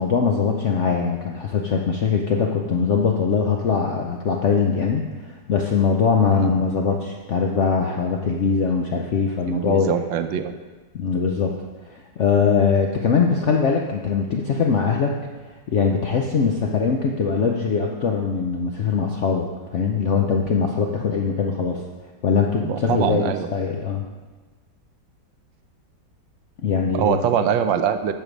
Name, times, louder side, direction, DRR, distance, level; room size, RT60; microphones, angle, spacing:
voice 1, 0.0-10.0 10.9-11.5 11.9-15.2 15.7-21.8 22.2-23.2 23.5-24.0 26.6-27.2, left 5 dB, 70° left, 1 dB, 0.7 m, -21 dB
voice 2, 9.5-10.5 22.6-23.5 26.9-28.1, right 8 dB, 80° right, 9 dB, 1.3 m, -23 dB
8.9 x 6.7 x 5.2 m, 1.3 s
omnidirectional pair, 2.0 m